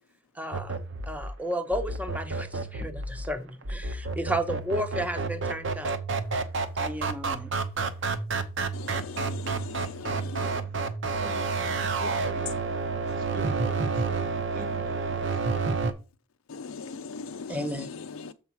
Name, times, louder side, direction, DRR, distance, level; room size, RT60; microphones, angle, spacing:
voice 1, 0.4-0.8 1.1-5.9 6.8-7.5 17.2-17.9, equal, 5° right, 0.8 m, -33 dB
sound 1, 0.5-15.9, right 4 dB, 60° right, 0.8 m, -30 dB
voice 2, 8.7-10.5 16.5-18.3, left 5 dB, 85° left, 0.5 m, -39 dB
voice 3, 10.3-10.8 11.2-12.6 13.1-15.4, right 3 dB, 45° right, 0.5 m, -44 dB
7.2 x 4.7 x 4.6 m
head